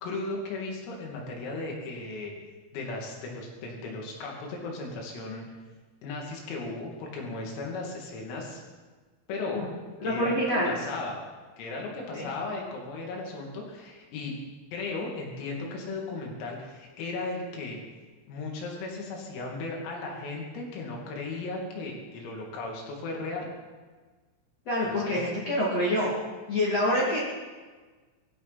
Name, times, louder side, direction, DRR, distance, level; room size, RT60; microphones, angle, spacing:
voice 1, 0.0-2.3 2.7-5.5 6.0-8.6 9.3-9.7 10.0-11.2 11.6-14.3 14.7-17.8 18.3-23.5 24.8-25.3, left 3 dB, 85° left, -1 dB, 5.3 m, -36 dB
voice 2, 10.0-10.7 12.1-12.3 24.7-26.1 26.5-27.2, left 1 dB, 40° left, -6 dB, 2.9 m, -26 dB
20.0 x 14.5 x 4.3 m, 1.4 s
omnidirectional pair, 6.0 m